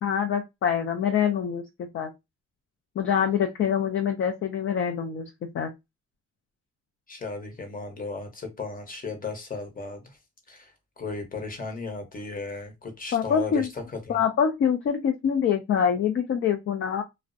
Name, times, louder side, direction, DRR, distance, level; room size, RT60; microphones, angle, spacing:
voice 1, 0.0-2.1 3.0-5.3 5.5-5.7 13.1-13.7 14.1-17.0, left 8 dB, 45° left, 0.4 m, -25 dB
voice 2, 7.1-10.2 10.5-14.2, left 4 dB, 30° left, 0.9 m, -36 dB
2.4 x 2.0 x 2.5 m
cardioid pair, 90°, 30 cm